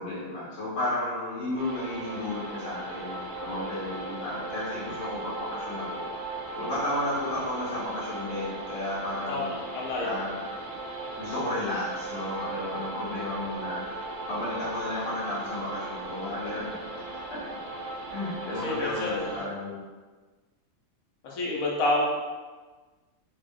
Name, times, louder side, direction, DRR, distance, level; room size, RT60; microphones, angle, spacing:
voice 1, 0.0-6.0 6.6-9.5 10.0-10.4 11.2-13.9 14.3-16.7 17.3-17.4 18.1-19.8, left 1 dB, 70° left, -9 dB, 1.3 m, -33 dB
sound 1, 1.6-19.4, right 2 dB, 70° right, 0.9 m, -37 dB
voice 2, 9.3-10.2 18.6-19.3 21.2-22.1, left 2 dB, 90° left, -4 dB, 1.1 m, -29 dB
3.1 x 2.0 x 3.5 m, 1.4 s
omnidirectional pair, 1.4 m